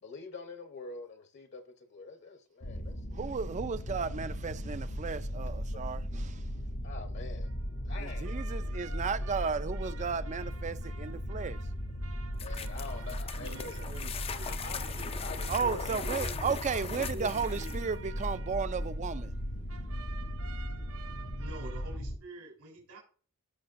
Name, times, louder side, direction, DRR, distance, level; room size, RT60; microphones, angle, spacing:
voice 1, 0.0-3.2 5.7-5.8 6.8-7.5 7.8-8.4 12.4-13.7 14.3-15.9, left 4 dB, 50° left, 0.9 m, -45 dB
sound 1, 2.6-22.2, equal, 85° left, 2.7 m, -37 dB
voice 2, 3.1-6.5 8.0-11.6 15.5-19.3, right 5 dB, 30° right, 0.4 m, -34 dB
sound 2, 7.4-19.4 19.7-22.0, right 5 dB, 65° right, 0.7 m, -52 dB
sound 3, 12.3-17.9, left 6 dB, 25° left, 0.4 m, -41 dB
voice 3, 13.4-16.5 16.8-17.9 21.4-23.0, right 2 dB, 80° right, 3.7 m, -47 dB
16.5 x 6.0 x 2.5 m
head